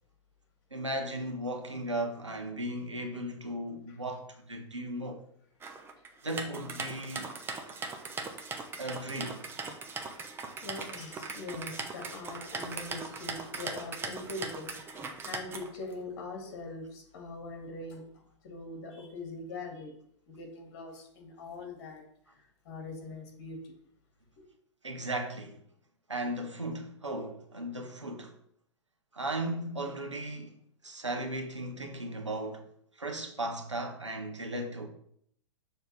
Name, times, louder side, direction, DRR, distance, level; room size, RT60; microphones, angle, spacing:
voice 1, 0.7-5.2 6.2-7.3 8.8-9.4 24.8-25.5 26.1-28.3 29.1-30.5 30.8-32.6 33.0-34.9, right 1 dB, 80° right, 1.2 m, -36 dB
sound 1, 5.6-15.9, right 4 dB, 15° right, 0.8 m, -40 dB
voice 2, 10.6-18.0 18.4-19.9 20.3-22.0 22.3-23.7 24.4-24.5, left 2 dB, 45° left, 2.0 m, -42 dB
6.8 x 3.6 x 5.9 m
figure-of-eight pair, 105°, 15 cm